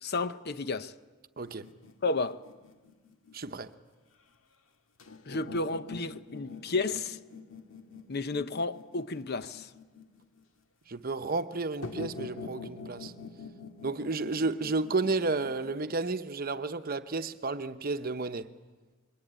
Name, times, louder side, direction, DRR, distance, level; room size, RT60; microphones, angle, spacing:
voice 1, 0.0-0.9 2.0-2.4 5.3-7.2 8.1-9.7, left 3 dB, 50° left, 0.8 m, -32 dB
sound 1, 1.4-3.5 5.0-10.4 11.8-16.1, left 4 dB, 85° left, 1.7 m, -45 dB
voice 2, 1.4-1.7 3.3-3.7 10.9-13.1 13.8-18.5, right 3 dB, 45° right, 0.9 m, -32 dB
27.0 x 22.5 x 8.9 m
head